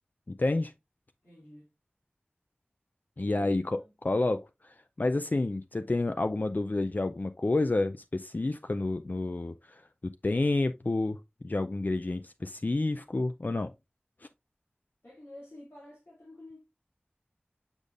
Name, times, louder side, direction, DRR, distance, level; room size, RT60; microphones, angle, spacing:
voice 1, 0.3-0.7 3.2-13.7, left 2 dB, 50° left, 0.4 m, -30 dB
voice 2, 1.2-1.7 3.2-3.9 15.0-16.6, left 1 dB, 85° left, 2.5 m, -50 dB
8.1 x 5.2 x 2.4 m
wide cardioid pair, 45°, 4 cm